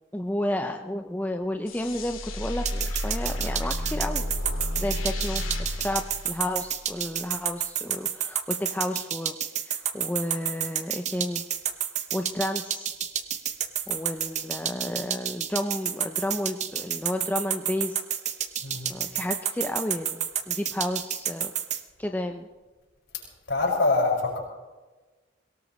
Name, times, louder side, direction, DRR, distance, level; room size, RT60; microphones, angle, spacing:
voice 1, 0.1-4.2 4.8-9.4 9.6-11.4 12.1-12.9 13.9-18.0 18.9-21.6 22.0-22.5, left 1 dB, 10° left, 4 dB, 0.5 m, -31 dB
sound 1, 1.7-7.0, left 1 dB, 85° left, 2.1 m, -32 dB
sound 2, 2.7-21.8, right 9 dB, 35° right, 0.8 m, -29 dB
voice 2, 18.6-19.0 23.5-24.4, left 3 dB, 65° left, -2 dB, 5.7 m, -24 dB
22.5 x 18.0 x 3.1 m, 1.2 s
head